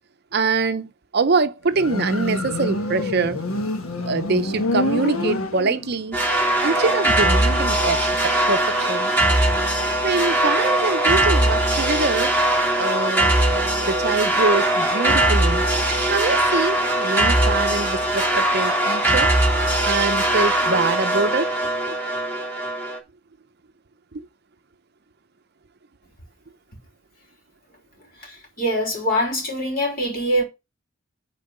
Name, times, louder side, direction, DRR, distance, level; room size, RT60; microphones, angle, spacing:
voice 1, 0.3-3.4 4.0-6.2 6.6-9.1 10.0-12.3 12.8-13.3 13.8-15.7 16.1-19.3 19.8-21.6 21.9-22.0 24.1-24.3, right 4 dB, 50° right, 0.6 m, -24 dB
Motorcycle, 1.7-6.1, left 2 dB, 85° left, 1.4 m, -26 dB
sound 1, 6.1-23.0, right 1 dB, 10° left, 2.3 m, -20 dB
voice 2, 28.2-30.4, equal, 45° left, 3.3 m, -23 dB
9.0 x 3.9 x 6.6 m
head